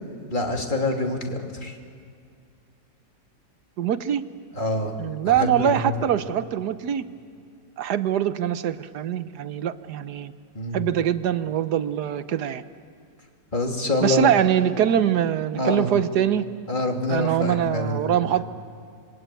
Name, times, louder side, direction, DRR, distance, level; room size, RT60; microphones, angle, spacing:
voice 1, 0.3-1.8 4.5-4.9 5.2-5.9 10.5-10.9 13.5-14.3 15.5-15.9 16.7-18.3, left 2 dB, 25° left, 2 dB, 2.9 m, -26 dB
voice 2, 3.8-4.2 5.0-7.0 7.8-10.3 10.7-12.6 14.0-16.4 17.1-18.4, right 10 dB, 65° right, 12 dB, 1.4 m, -23 dB
27.0 x 22.0 x 9.2 m, 2.3 s
omnidirectional pair, 1.9 m